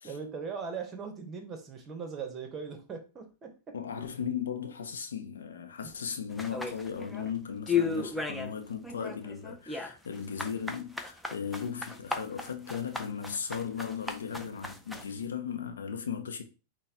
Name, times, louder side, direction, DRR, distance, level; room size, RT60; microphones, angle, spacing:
voice 1, 0.0-3.8, right 5 dB, 30° right, 1.0 m, -39 dB
voice 2, 3.7-16.4, left 7 dB, 90° left, 0.6 m, -37 dB
sound 1, 6.4-7.3 7.7-8.5 8.8-15.1, left 5 dB, 5° left, 0.5 m, -34 dB
5.5 x 2.2 x 2.9 m
hypercardioid pair, 115°, 0 cm